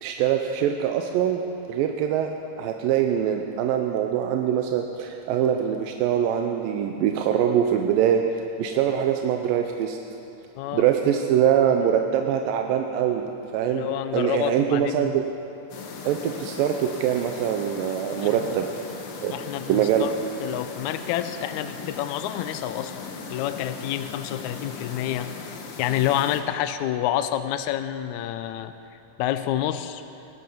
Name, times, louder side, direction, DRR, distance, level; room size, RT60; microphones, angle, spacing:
voice 1, 0.0-1.4 1.7-2.3 2.6-8.2 8.6-10.0 10.7-15.2 16.1-18.7 19.2-19.3 19.7-20.1, right 9 dB, 90° right, 4 dB, 2.4 m, -23 dB
voice 2, 13.7-15.1 18.2-18.4 19.3-20.1 20.4-25.4 25.8-28.7 29.2-30.0, left 12 dB, 80° left, 10 dB, 1.7 m, -28 dB
sound 1, 15.7-26.4, left 4 dB, 60° left, 1.5 m, -38 dB
18.5 x 13.0 x 5.5 m, 3.0 s
omnidirectional pair, 4.0 m